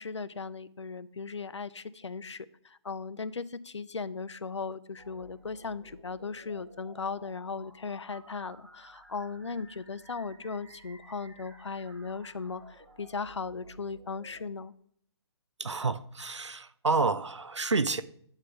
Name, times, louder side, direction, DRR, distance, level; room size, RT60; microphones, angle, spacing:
voice 1, 0.0-14.7, left 4 dB, 75° left, 0.5 m, -37 dB
sound 1, 5.0-14.5, right 1 dB, 55° right, 2.5 m, -55 dB
voice 2, 15.6-18.0, right 4 dB, 85° right, 0.5 m, -29 dB
9.6 x 3.4 x 5.8 m
figure-of-eight pair, 135°, 15 cm